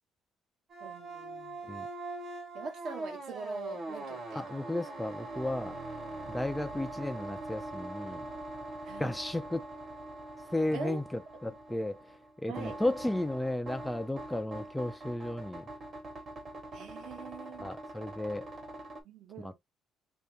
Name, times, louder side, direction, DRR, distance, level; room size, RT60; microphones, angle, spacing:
sound 1, 0.7-19.0, right 2 dB, 35° right, 1.2 m, -43 dB
voice 1, 0.8-1.6 2.5-4.5 8.8-9.1 10.7-11.0 11.5-11.6 12.5-12.8 16.7-17.7 19.0-19.6, right 4 dB, 55° right, 1.1 m, -42 dB
voice 2, 4.3-5.8 6.3-8.3 9.0-9.6 10.5-11.0 11.4-12.0 12.4-15.6 17.6-18.5 19.4-19.6, left 1 dB, 5° left, 0.3 m, -34 dB
3.5 x 2.7 x 3.2 m
cardioid pair, 160°, 0 cm